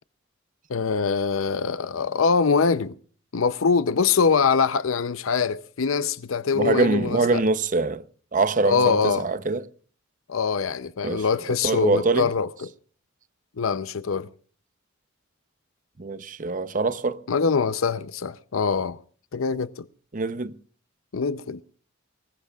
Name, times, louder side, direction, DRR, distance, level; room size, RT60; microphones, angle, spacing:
voice 1, 0.7-2.9 3.3-7.4 8.6-9.3 10.3-12.5 13.6-14.3 17.3-19.0 19.3-19.8 21.1-21.6, left 5 dB, 85° left, 0.6 m, -23 dB
voice 2, 6.5-8.0 8.3-9.7 11.0-12.3 16.0-17.2 20.1-20.6, right 3 dB, 40° right, 0.8 m, -24 dB
24.5 x 20.5 x 2.4 m
head